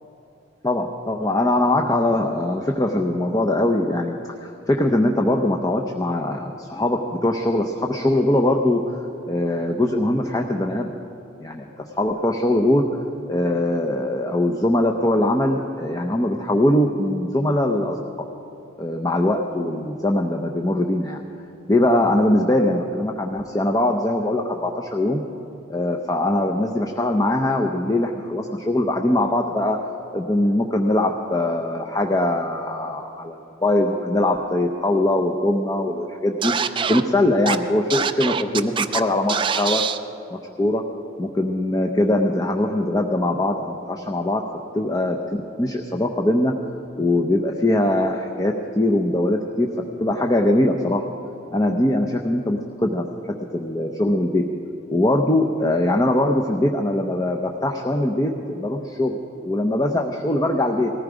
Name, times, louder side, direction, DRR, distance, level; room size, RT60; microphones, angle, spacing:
voice 1, 0.6-8.8 9.3-10.9 11.4-11.7 11.9-12.8 13.3-18.0 18.8-21.2 21.7-25.2 25.7-29.8 30.1-36.5 36.9-39.8 40.3-40.8 41.2-44.4 44.7-45.2 45.6-46.5 46.9-49.7 50.0-51.0 51.5-54.4 54.9-60.9, left 1 dB, 15° left, 2 dB, 0.6 m, -21 dB
Scratching (performance technique), 36.4-37.0 37.5-37.6 37.9-39.0 39.3-40.0, right 6 dB, 25° right, 0.4 m, -23 dB
19.5 x 14.5 x 5.0 m, 2.9 s
head